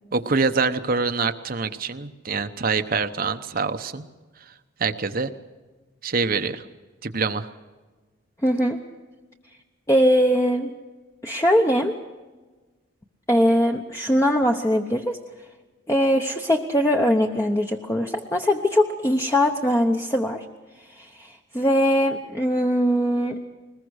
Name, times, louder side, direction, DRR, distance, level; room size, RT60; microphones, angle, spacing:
voice 1, 0.1-4.0 4.8-5.3 6.0-6.6 7.0-7.5, right 4 dB, 45° right, 9 dB, 0.9 m, -25 dB
voice 2, 8.4-8.8 9.9-10.7 11.2-11.9 13.3-15.2 15.9-20.4 21.0-23.4, equal, 15° left, 2 dB, 0.9 m, -21 dB
21.5 x 20.5 x 6.4 m, 1.3 s
head